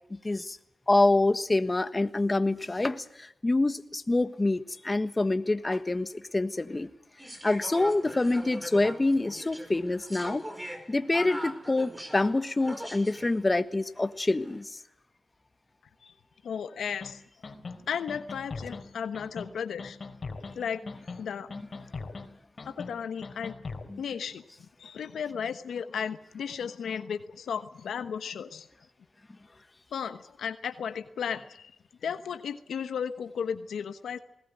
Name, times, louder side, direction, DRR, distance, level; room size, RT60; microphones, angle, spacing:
voice 1, 0.1-0.6 0.9-6.9 7.4-10.4 10.9-14.8 23.9-24.0, left 2 dB, 25° left, 11 dB, 1.4 m, -26 dB
sound 1, 7.2-13.4 14.3-14.6, equal, 15° right, 5.3 m, -41 dB
voice 2, 16.4-17.2 17.9-20.0 20.5-20.8 21.2-21.5 22.6-23.5 24.0-24.4 24.8-28.7 29.9-31.7 32.0-34.2, left 7 dB, 85° left, 9 dB, 1.1 m, -34 dB
sound 2, 17.0-17.1 17.4-17.8 18.1-18.8 19.1-19.5 19.8-20.5 20.9-21.2 21.5-22.3 22.6-22.9 23.2-23.9, left 4 dB, 50° left, 3.9 m, -39 dB
20.0 x 18.0 x 9.2 m, 0.77 s
cardioid pair, 60°, 0 cm